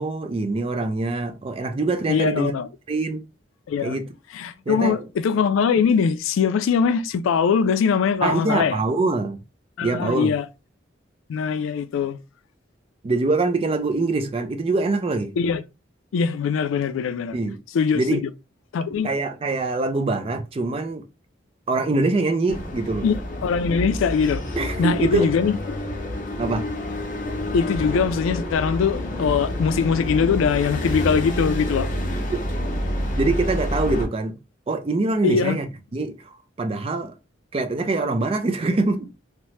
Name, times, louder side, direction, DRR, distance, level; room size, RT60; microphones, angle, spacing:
voice 1, 0.0-2.5 2.9-3.2 3.8-4.1 4.7-5.0 8.2-9.4 9.8-10.3 13.0-15.3 17.3-17.6 17.9-18.2 19.0-21.0 21.7-23.1 24.5-25.3 26.4-26.6 33.2-34.4 34.7-37.1 37.5-39.1, right 3 dB, 30° right, 0.3 m, -24 dB
voice 2, 2.1-2.7 3.7-4.0 4.3-8.8 9.8-10.5 11.3-12.2 15.4-15.6 16.1-17.4 17.7-18.3 18.7-19.1 23.0-23.2 23.4-24.4 24.8-25.6 27.5-31.9 35.2-35.6, left 6 dB, 90° left, 0.3 m, -22 dB
sound 1, 22.5-34.1, left 1 dB, 40° left, 0.7 m, -28 dB
2.7 x 2.0 x 3.1 m
head